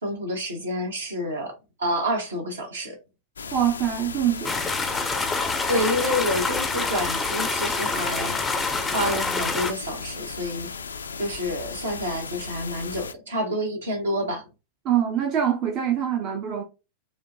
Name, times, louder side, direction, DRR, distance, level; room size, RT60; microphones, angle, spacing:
voice 1, 0.0-3.0 5.7-8.4 8.9-10.7 11.2-14.4, equal, 65° right, 1.1 m, -28 dB
sound 1, 3.4-13.1, left 5 dB, 75° left, 0.3 m, -36 dB
voice 2, 3.5-4.6 14.8-16.6, right 9 dB, 40° right, 0.5 m, -24 dB
sound 2, 4.4-9.7, left 3 dB, 10° left, 0.5 m, -27 dB
4.9 x 2.2 x 2.5 m
figure-of-eight pair, 90°, 0 cm